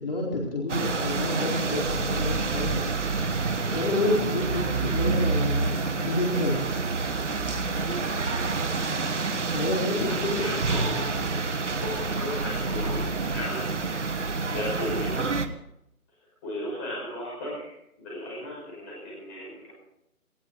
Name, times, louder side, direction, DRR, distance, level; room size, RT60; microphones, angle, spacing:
voice 1, 0.0-2.9 3.7-6.6 9.5-10.5, left 1 dB, 40° left, -3 dB, 4.3 m, -28 dB
sound 1, 0.7-15.5, right 4 dB, 50° right, 1.4 m, -28 dB
voice 2, 7.8-8.1 10.1-11.4 11.8-13.8 14.5-15.3 16.4-19.7, left 1 dB, 10° left, -6 dB, 5.5 m, -35 dB
19.0 x 17.0 x 4.0 m, 0.80 s
figure-of-eight pair, 175°, 44 cm